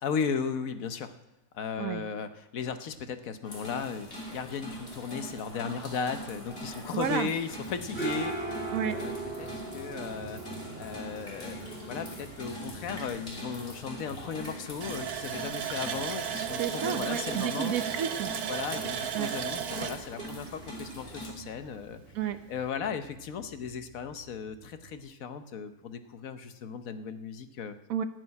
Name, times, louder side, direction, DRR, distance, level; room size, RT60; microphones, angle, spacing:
voice 1, 0.0-1.1 1.5-9.1 9.4-10.4 10.8-11.6 11.9-17.7 18.5-22.0 22.5-27.8, left 6 dB, 70° left, 9 dB, 1.2 m, -36 dB
sound 1, 3.4-21.3, equal, 40° left, 3.5 m, -43 dB
voice 2, 6.9-7.3 8.7-9.0 16.6-18.5 19.1-19.3 22.1-22.4 27.9-28.0, right 9 dB, 70° right, 10 dB, 1.2 m, -31 dB
sound 2, 7.5-25.0, right 3 dB, 5° left, 3.1 m, -43 dB
Water tap faucet, 14.8-21.3 21.6-21.7 22.2-22.3, right 8 dB, 90° right, 1.4 m, -35 dB
13.5 x 6.4 x 9.7 m, 0.94 s
omnidirectional pair, 1.6 m